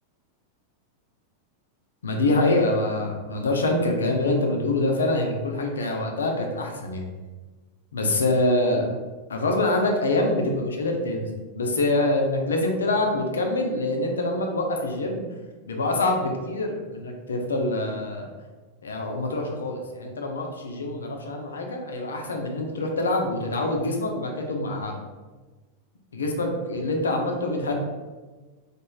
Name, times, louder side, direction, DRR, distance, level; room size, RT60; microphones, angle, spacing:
voice 1, 2.0-7.0 7.9-8.9 9.3-11.3 11.5-15.2 15.7-18.3 18.8-24.9 26.1-27.8, left 2 dB, 70° left, 2 dB, 0.4 m, -25 dB
3.0 x 2.4 x 2.3 m, 1.3 s
figure-of-eight pair, 90°, 0 cm